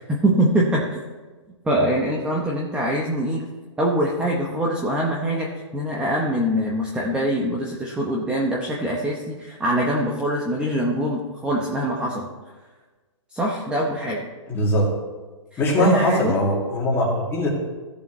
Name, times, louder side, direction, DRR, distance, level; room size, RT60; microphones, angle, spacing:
voice 1, 0.1-1.0 1.6-3.4 3.8-12.3 13.3-14.3 15.5-16.4, right 1 dB, 5° right, -2 dB, 0.9 m, -23 dB
voice 2, 14.5-14.9 15.6-17.5, left 1 dB, 15° left, -4 dB, 2.4 m, -21 dB
16.5 x 7.0 x 3.2 m, 1.3 s
hypercardioid pair, 155°, 17 cm